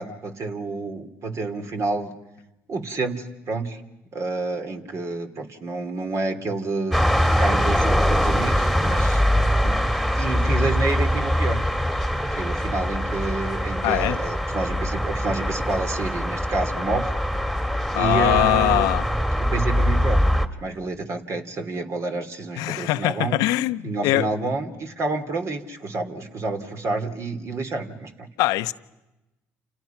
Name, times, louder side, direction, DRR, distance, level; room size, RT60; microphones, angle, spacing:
voice 1, 0.0-2.2 2.7-3.8 4.1-7.0 7.4-9.2 9.6-9.8 10.1-11.6 12.4-17.1 17.9-18.9 19.4-23.4 23.8-28.3, right 3 dB, 50° right, 3.1 m, -29 dB
sound 1, 6.9-20.5, equal, 5° right, 2.4 m, -23 dB
voice 2, 13.8-14.2 17.9-19.0 22.6-24.3 28.4-28.7, left 17 dB, 80° left, 0.8 m, -22 dB
29.0 x 29.0 x 5.9 m
supercardioid pair, 65°, 6 cm